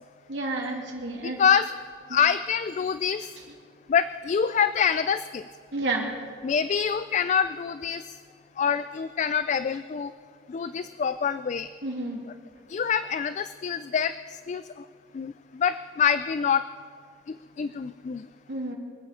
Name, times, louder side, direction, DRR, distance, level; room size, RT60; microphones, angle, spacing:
voice 1, 0.3-1.4 2.1-2.2 5.7-6.2 11.8-12.2 18.5-18.7, right 2 dB, 75° right, -1 dB, 2.9 m, -30 dB
voice 2, 1.2-1.7 2.1-3.3 3.9-5.4 6.4-8.0 8.6-10.1 10.5-11.7 12.7-14.1 14.5-14.6 15.1-16.6 17.3-18.3, left 7 dB, 40° left, 13 dB, 0.3 m, -25 dB
25.0 x 8.8 x 5.0 m, 2.2 s
head